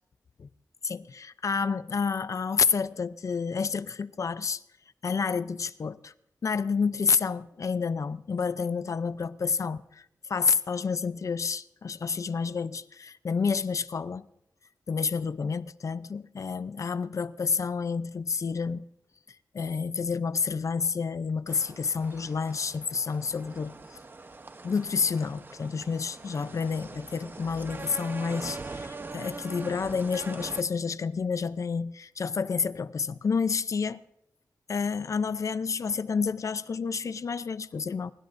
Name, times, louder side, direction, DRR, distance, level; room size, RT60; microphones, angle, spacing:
voice 1, 0.8-4.6 5.0-6.1 6.4-14.3 14.9-18.9 19.5-24.0 24.6-34.0 34.7-38.1, left 5 dB, 55° left, 0.5 m, -29 dB
sound 1, 21.5-30.6, right 3 dB, 35° right, 0.9 m, -42 dB
25.0 x 22.5 x 2.6 m
wide cardioid pair, 140°, 6 cm